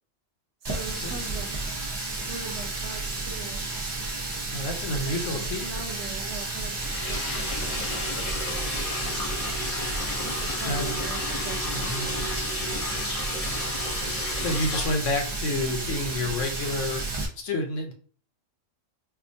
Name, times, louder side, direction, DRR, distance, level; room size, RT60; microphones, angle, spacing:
Water tap faucet, 0.6-17.3, right 2 dB, 40° right, 0.3 m, -32 dB
voice 1, 0.7-1.5 2.3-3.7 5.0-5.2 5.6-7.8 10.2-12.3, right 5 dB, 65° right, 5 dB, 0.8 m, -41 dB
voice 2, 4.5-5.8 9.6-9.9 10.6-10.9 11.7-12.1 14.1-17.1 17.4-17.9, left 1 dB, 65° left, 3 dB, 1.1 m, -30 dB
Liquid, 6.7-14.9, left 2 dB, 45° left, 0.5 m, -32 dB
4.3 x 2.4 x 2.6 m, 0.42 s
omnidirectional pair, 1.4 m